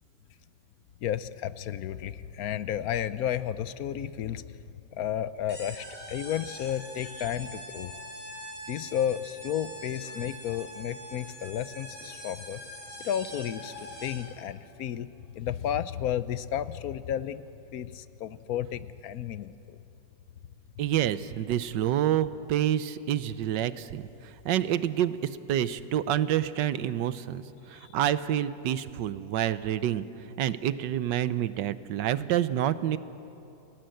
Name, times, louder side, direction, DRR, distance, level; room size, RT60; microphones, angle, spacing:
voice 1, 1.0-4.6 4.9-7.9 8.7-12.6 13.0-15.1 15.4-17.5 17.7-19.8 27.8-27.9, left 10 dB, 65° left, 15 dB, 1.0 m, -32 dB
sound 1, 5.5-14.4, equal, 5° left, 6.1 m, -43 dB
voice 2, 20.8-25.2 25.5-30.0 30.4-33.0, right 11 dB, 80° right, 14 dB, 1.4 m, -28 dB
29.0 x 18.5 x 7.8 m, 2.9 s
omnidirectional pair, 1.9 m